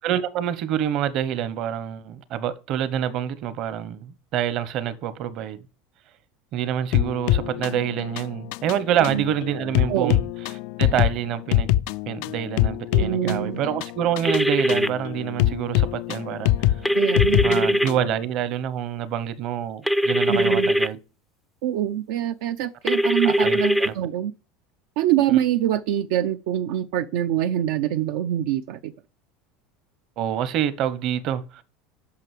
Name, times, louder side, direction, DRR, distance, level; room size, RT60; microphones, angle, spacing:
voice 1, 0.0-5.6 6.5-10.2 10.8-11.7 12.1-16.7 17.4-21.0 23.2-23.9 30.2-31.6, right 10 dB, 50° right, 1.1 m, -27 dB
sound 1, 6.9-18.1, left 14 dB, 65° left, 0.4 m, -24 dB
voice 2, 12.9-13.6 16.9-17.8 20.3-20.7 21.6-24.3 25.0-28.9, right 11 dB, 75° right, 0.7 m, -25 dB
sound 2, 14.2-14.9 16.8-17.9 19.9-20.9 22.9-23.9, equal, ahead, 0.5 m, -21 dB
8.5 x 6.0 x 7.6 m
supercardioid pair, 145°, 0 cm